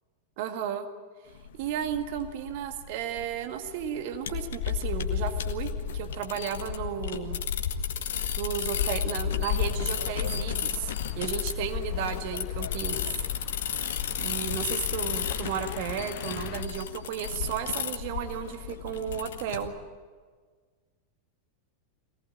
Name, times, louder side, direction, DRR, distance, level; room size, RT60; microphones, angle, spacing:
voice 1, 0.4-0.9 1.6-7.4 8.4-13.1 14.2-19.7, right 8 dB, 50° right, 6 dB, 1.9 m, -34 dB
sound 1, 1.3-19.7, left 8 dB, 60° left, 1.5 m, -32 dB
sound 2, 9.4-16.6, left 12 dB, 45° left, 1.0 m, -41 dB
23.5 x 18.5 x 8.8 m, 1.5 s
figure-of-eight pair, 90°, 0 cm